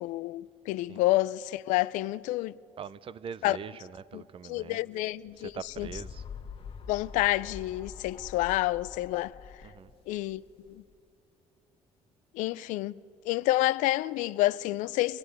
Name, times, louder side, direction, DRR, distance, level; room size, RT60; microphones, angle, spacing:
voice 1, 0.0-2.6 3.4-3.6 4.1-5.5 5.8-5.9 6.9-9.3 10.1-10.8 12.3-12.9 13.3-15.2, left 17 dB, 80° left, 0.5 m, -29 dB
voice 2, 2.8-4.9 5.4-6.2 9.6-9.9, right 7 dB, 45° right, 0.6 m, -43 dB
sound 1, 5.3-10.9, left 6 dB, 45° left, 1.6 m, -45 dB
24.5 x 16.5 x 9.5 m
supercardioid pair, 80°, 13 cm